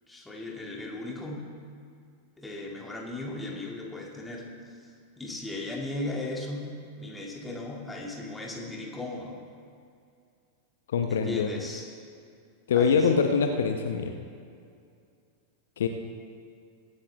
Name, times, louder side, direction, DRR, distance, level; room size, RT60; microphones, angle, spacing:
voice 1, 0.1-1.5 2.4-4.4 4.8-4.9 5.2-9.4 11.1-11.9 12.7-13.3, left 2 dB, 10° left, -2 dB, 2.3 m, -37 dB
voice 2, 10.9-11.5 12.7-14.1 15.8-15.9, left 6 dB, 60° left, 6 dB, 0.8 m, -24 dB
22.0 x 8.4 x 3.4 m, 2.4 s
figure-of-eight pair, 90°, 0 cm